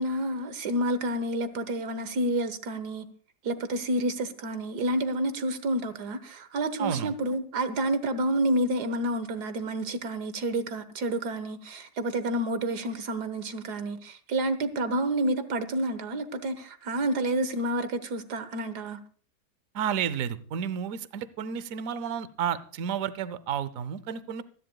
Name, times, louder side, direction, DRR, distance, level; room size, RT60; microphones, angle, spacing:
voice 1, 0.0-3.1 3.4-19.0, right 1 dB, 75° right, 1.7 m, -29 dB
voice 2, 6.8-7.1 19.7-24.4, right 8 dB, 60° right, 1.1 m, -31 dB
26.0 x 11.0 x 2.3 m
omnidirectional pair, 1.7 m